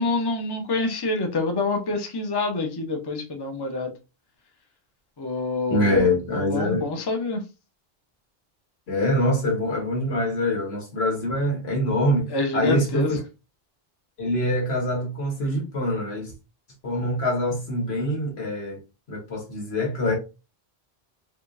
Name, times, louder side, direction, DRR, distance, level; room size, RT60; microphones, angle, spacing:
voice 1, 0.0-3.9 5.2-6.1 6.3-7.4 12.3-13.1, left 3 dB, 30° left, 0.6 m, -26 dB
voice 2, 5.7-6.9 8.9-13.2 14.2-16.3 16.8-18.8 19.1-20.1, left 1 dB, 90° left, 1.6 m, -24 dB
4.5 x 2.4 x 2.5 m
omnidirectional pair, 1.0 m